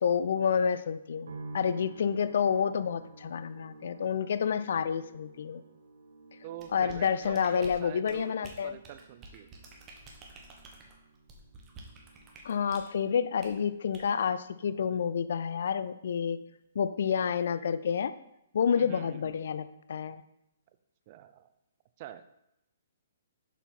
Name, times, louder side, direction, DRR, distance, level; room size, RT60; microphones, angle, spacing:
voice 1, 0.0-5.6 6.7-8.8 12.4-16.4 16.8-18.1 18.5-20.2, left 7 dB, 65° left, 14 dB, 0.4 m, -29 dB
sound 1, 1.3-16.5 16.8-17.6, right 3 dB, 75° right, 1.0 m, -52 dB
voice 2, 6.4-9.5 18.8-19.4 21.1-21.5 22.0-22.2, right 12 dB, 40° right, 11 dB, 0.6 m, -46 dB
sound 2, 6.6-12.9 13.4-13.6 13.9-14.1, right 3 dB, 25° right, 1.4 m, -50 dB
7.2 x 5.5 x 4.3 m, 0.83 s
hypercardioid pair, 140°, 0 cm